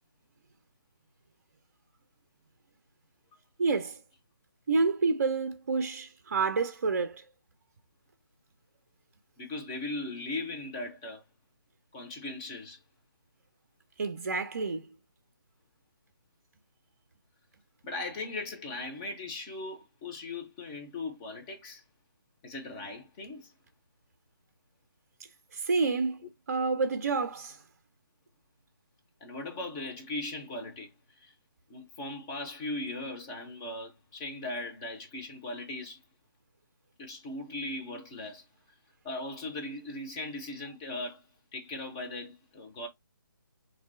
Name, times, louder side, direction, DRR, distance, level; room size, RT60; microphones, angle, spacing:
voice 1, 3.6-4.0 4.7-7.2 14.0-14.8 25.5-26.2 26.5-27.6, right 4 dB, 45° right, 0.5 m, -28 dB
voice 2, 9.4-11.2 11.9-12.8 17.8-21.8 22.4-23.5 29.2-31.3 31.7-36.0 37.0-38.5 39.0-41.2 41.5-42.9, left 2 dB, 15° left, 0.5 m, -38 dB
3.5 x 2.7 x 3.0 m
figure-of-eight pair, 145°, 12 cm